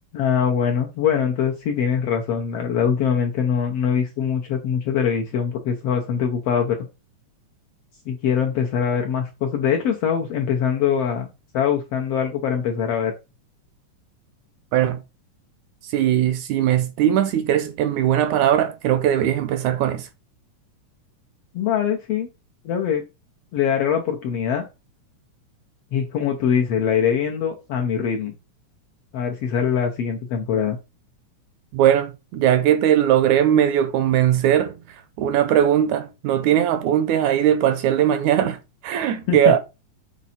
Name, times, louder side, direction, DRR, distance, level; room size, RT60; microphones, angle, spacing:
voice 1, 0.1-6.8 8.1-11.3 11.5-13.1 21.5-22.3 22.6-23.0 23.5-24.6 25.9-28.3 29.1-30.8 39.3-39.5, left 7 dB, 70° left, 1.5 m, -23 dB
voice 2, 15.8-20.1 31.7-34.8 35.2-39.6, right 10 dB, 80° right, 1.8 m, -19 dB
7.4 x 4.0 x 4.2 m
omnidirectional pair, 3.7 m